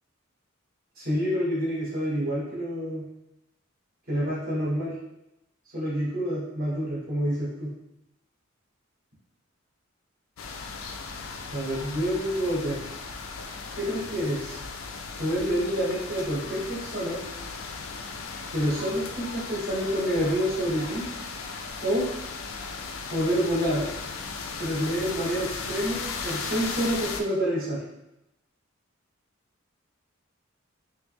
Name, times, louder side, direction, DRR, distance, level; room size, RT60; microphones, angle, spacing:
voice 1, 1.0-3.1 4.1-5.0 5.7-7.7 11.5-12.8 13.7-14.6 15.2-17.2 18.5-21.1 21.8-22.1 23.1-23.9 24.6-27.8, equal, 50° right, -6 dB, 1.5 m, -28 dB
sound 1, 10.4-27.2, left 4 dB, 75° left, 0.4 m, -36 dB
3.3 x 3.0 x 3.4 m, 0.89 s
head